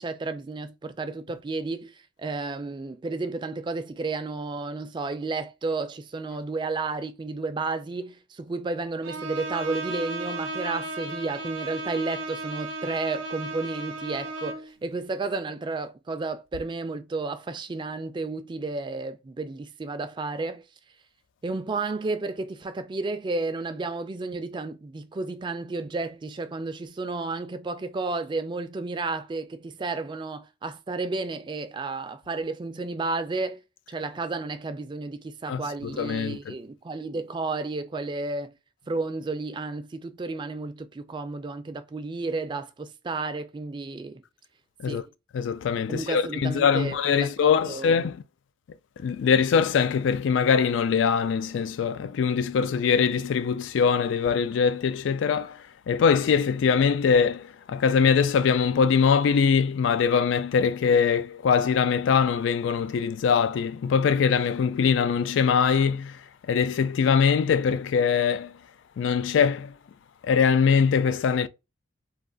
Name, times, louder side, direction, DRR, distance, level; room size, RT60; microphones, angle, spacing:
voice 1, 0.0-20.6 21.4-33.6 33.9-38.5 38.9-44.2 44.9-45.1 45.9-48.0, right 3 dB, 25° right, 0.3 m, -32 dB
Bowed string instrument, 9.0-14.7, right 2 dB, 85° right, 0.5 m, -35 dB
voice 2, 35.5-36.5 44.8-45.0 45.3-48.2 49.0-55.6 55.9-66.2 66.5-68.5 69.0-69.7 70.2-71.5, left 6 dB, 80° left, 0.3 m, -22 dB
2.4 x 2.3 x 3.7 m
head